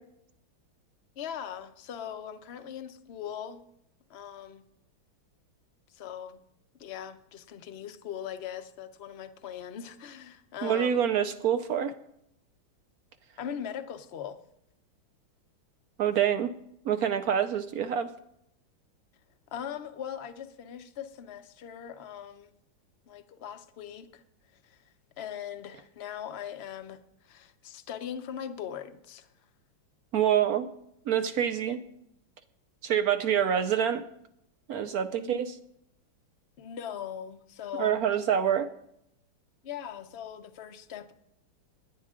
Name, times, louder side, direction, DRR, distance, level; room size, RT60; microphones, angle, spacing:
voice 1, 1.2-3.6 4.1-4.6 5.9-6.4 6.8-11.1 13.4-14.4 19.5-22.5 23.1-24.2 24.6-24.8 25.2-29.3 35.1-35.5 36.6-38.0 39.6-41.1, left 9 dB, 55° left, 0.7 m, -40 dB
voice 2, 10.6-11.9 16.0-16.5 16.8-18.1 30.1-30.7 31.1-31.8 32.8-34.0 34.7-35.5 37.7-38.7, right 9 dB, 65° right, 0.9 m, -26 dB
17.5 x 11.0 x 3.7 m
omnidirectional pair, 2.2 m